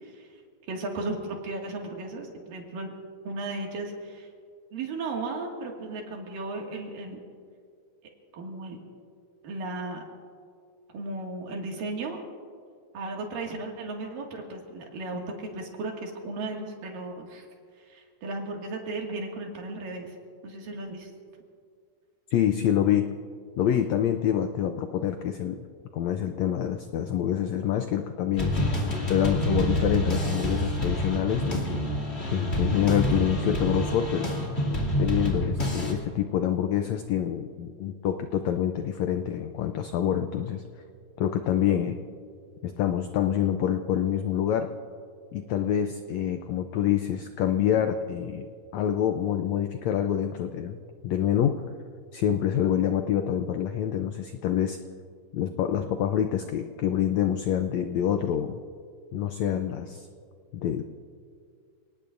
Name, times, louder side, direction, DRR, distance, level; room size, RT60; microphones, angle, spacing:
voice 1, 0.0-0.3 0.7-2.9 3.2-4.3 4.7-7.2 8.3-8.8 9.4-10.0 10.9-12.2 12.9-17.5 17.8-20.2 20.4-21.1, right 2 dB, 75° right, 0 dB, 3.7 m, -35 dB
voice 2, 22.3-23.1 23.6-25.6 25.9-28.6 29.1-31.8 32.3-34.3 35.0-40.6 41.2-42.0 42.6-44.7 45.3-48.5 48.7-51.6 52.1-54.8 55.3-58.6 59.1-60.1 60.5-60.8, left 10 dB, 85° left, 7 dB, 1.5 m, -26 dB
sound 1, 28.4-35.9, equal, 20° left, 2.2 m, -27 dB
29.5 x 19.0 x 2.6 m, 2.2 s
omnidirectional pair, 4.0 m